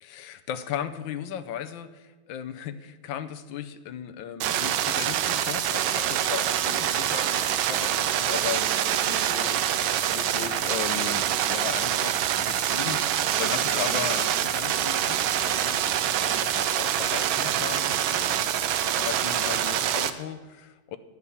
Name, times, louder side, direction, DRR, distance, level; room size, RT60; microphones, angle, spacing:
voice 1, 0.0-21.0, left 9 dB, 75° left, 11 dB, 1.5 m, -37 dB
sound 1, 4.4-20.1, right 10 dB, 85° right, 1.5 m, -25 dB
11.5 x 8.3 x 7.1 m, 1.2 s
omnidirectional pair, 2.1 m